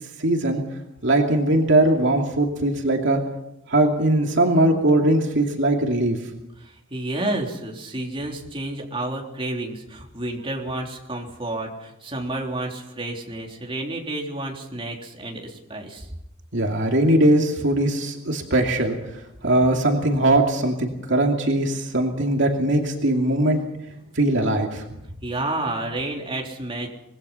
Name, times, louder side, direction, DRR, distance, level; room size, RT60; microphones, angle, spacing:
voice 1, 0.2-0.6 1.0-3.2 3.7-6.2 16.5-19.0 19.4-23.6 24.1-24.8, right 1 dB, 60° right, 1 dB, 2.6 m, -20 dB
voice 2, 6.6-16.1 23.3-23.6 24.0-24.2 25.2-26.9, right 2 dB, 25° right, 0 dB, 3.6 m, -30 dB
24.5 x 20.5 x 5.7 m, 0.86 s
head